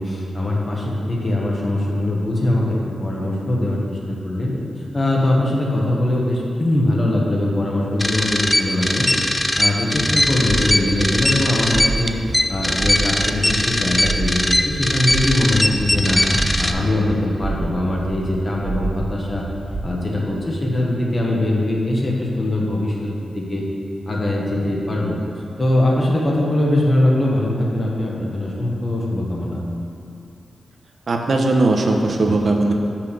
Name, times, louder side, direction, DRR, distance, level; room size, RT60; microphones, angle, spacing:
voice 1, 0.0-4.6 4.9-9.1 9.6-16.2 16.6-19.4 19.8-23.6 24.1-25.2 25.6-29.6, left 1 dB, 30° left, -3 dB, 1.2 m, -21 dB
sound 1, 8.0-16.7, left 1 dB, 10° left, 0.4 m, -20 dB
sound 2, 9.9-19.8, right 3 dB, 75° right, 1.9 m, -29 dB
voice 2, 31.1-32.7, right 2 dB, 50° right, 2 dB, 0.8 m, -18 dB
6.2 x 5.8 x 6.9 m, 2.5 s
wide cardioid pair, 160°, 0 cm